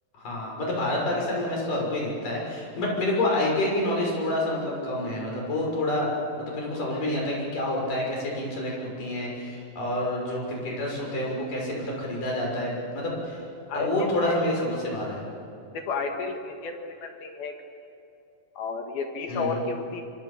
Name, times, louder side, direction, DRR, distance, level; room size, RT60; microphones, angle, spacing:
voice 1, 0.1-6.1 6.3-13.4 13.7-15.3 19.3-19.6, left 1 dB, 40° left, -2 dB, 7.8 m, -28 dB
voice 2, 13.7-14.7 15.7-17.5 18.6-20.0, left 4 dB, 60° left, 3 dB, 3.0 m, -32 dB
27.0 x 26.0 x 7.4 m, 2.7 s
omnidirectional pair, 6.0 m